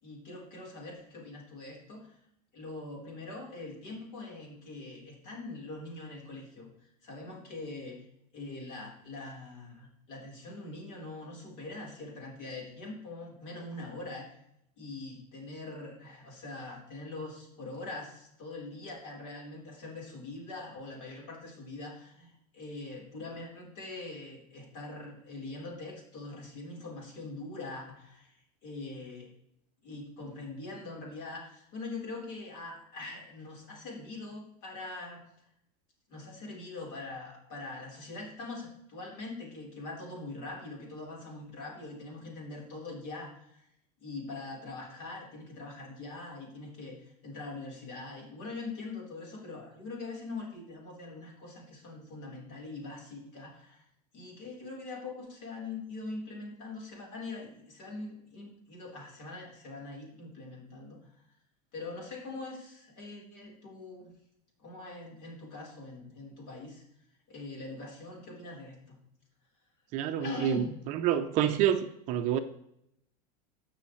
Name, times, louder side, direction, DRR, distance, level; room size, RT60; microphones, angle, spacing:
voice 1, 0.0-2.1 2.5-6.7 7.0-8.0 8.3-14.3 14.8-28.3 28.6-29.3 29.8-35.2 36.1-43.6 44.0-53.8 54.1-61.0 61.7-64.1 64.6-66.8 67.3-69.0 70.2-70.8 71.5-71.7, left 3 dB, 50° left, -1 dB, 4.0 m, -43 dB
voice 2, 69.9-72.4, right 10 dB, 40° right, 8 dB, 0.6 m, -28 dB
18.0 x 6.4 x 3.2 m, 0.77 s
supercardioid pair, 160°, 20 cm